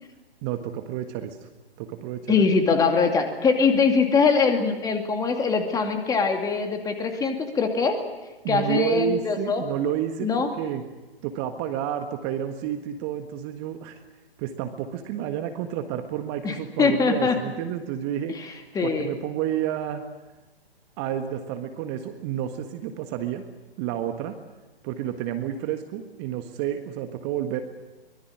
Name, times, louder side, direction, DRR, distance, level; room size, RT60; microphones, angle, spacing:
voice 1, 0.4-1.5 1.8-2.4 8.4-10.8 11.2-14.0 14.4-18.3 18.8-20.0 21.0-23.4 23.8-24.4 24.8-27.6, right 10 dB, 25° right, 7 dB, 1.6 m, -30 dB
voice 2, 2.3-8.0 8.5-9.6 10.2-10.5 16.4-17.4 18.4-18.5 18.7-19.1, left 5 dB, 10° left, 5 dB, 2.5 m, -22 dB
24.0 x 21.5 x 8.8 m, 1.1 s
figure-of-eight pair, 130°, 31 cm